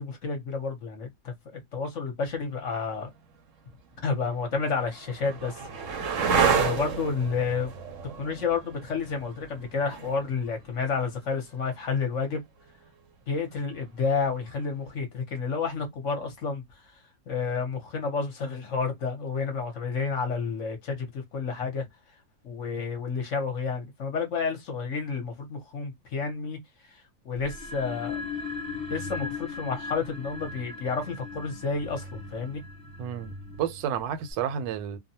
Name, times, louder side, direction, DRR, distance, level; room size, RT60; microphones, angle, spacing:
voice 1, 0.0-3.1 4.0-7.7 8.2-12.4 13.3-16.6 17.3-21.9 22.4-28.2 28.9-32.6, left 5 dB, 55° left, 1.0 m, -30 dB
sound 1, 3.1-3.2 4.0-11.7 14.0-14.5, right 6 dB, 60° right, 0.8 m, -30 dB
sound 2, 27.4-34.3, left 4 dB, 5° left, 0.7 m, -38 dB
voice 2, 33.0-35.0, right 9 dB, 85° right, 1.2 m, -31 dB
2.8 x 2.2 x 2.6 m
omnidirectional pair, 1.9 m